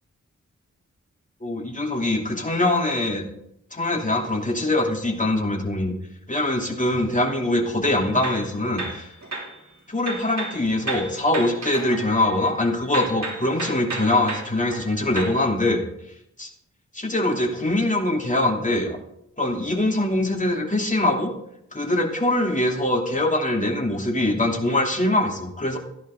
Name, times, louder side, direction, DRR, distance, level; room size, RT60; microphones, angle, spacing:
voice 1, 1.4-3.3 3.7-6.0 6.3-9.1 9.9-15.8 16.4-16.5 16.9-19.0 19.4-21.3 21.7-25.8, left 1 dB, 25° left, 0 dB, 3.0 m, -23 dB
sound 1, 7.9-9.6 10.0-12.6 12.9-15.4, right 2 dB, 60° right, 2.9 m, -33 dB
15.0 x 10.5 x 3.8 m, 0.77 s
cardioid pair, 55°, 31 cm